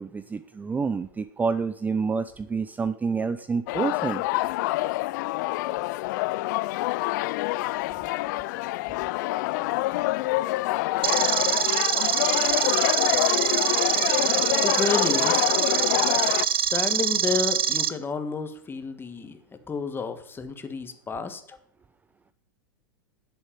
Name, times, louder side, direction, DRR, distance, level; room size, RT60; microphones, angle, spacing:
voice 1, 0.0-4.2, right 5 dB, 15° right, 13 dB, 0.5 m, -28 dB
sound 1, 3.7-16.5, left 19 dB, 55° left, 0.4 m, -26 dB
sound 2, 11.0-17.9, right 8 dB, 85° right, 0.9 m, -24 dB
voice 2, 14.6-15.5 16.6-21.6, left 5 dB, 20° left, 9 dB, 1.6 m, -31 dB
11.5 x 8.1 x 7.3 m, 0.65 s
hypercardioid pair, 100°, 12 cm